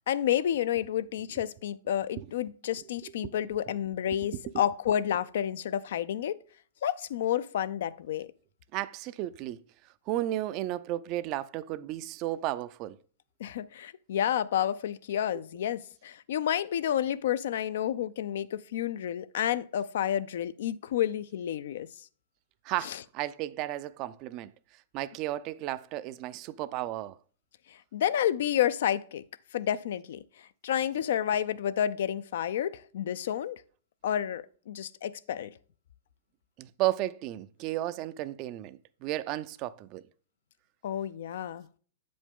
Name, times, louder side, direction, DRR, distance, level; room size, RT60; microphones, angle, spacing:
voice 1, 0.1-6.4 6.8-8.3 13.4-22.1 22.8-23.0 27.7-29.2 29.5-33.6 34.0-35.5 40.8-41.7, left 10 dB, 70° left, 0.4 m, -30 dB
voice 2, 4.3-4.6 8.7-9.6 10.1-13.0 22.6-24.5 24.9-27.2 36.6-40.0, right 14 dB, 45° right, 0.4 m, -33 dB
7.8 x 5.2 x 3.6 m
hypercardioid pair, 120°, 0 cm